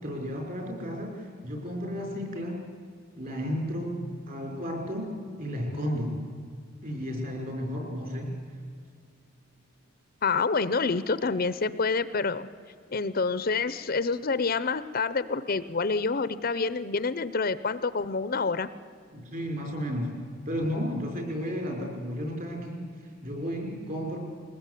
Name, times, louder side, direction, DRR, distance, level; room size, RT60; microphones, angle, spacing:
voice 1, 0.0-2.6 3.2-6.2 6.8-8.3 19.1-20.2 20.5-24.2, equal, 45° right, 2 dB, 5.6 m, -33 dB
voice 2, 10.2-12.5 12.9-18.7, left 4 dB, 45° left, 15 dB, 0.7 m, -27 dB
21.5 x 20.0 x 8.4 m, 2.2 s
head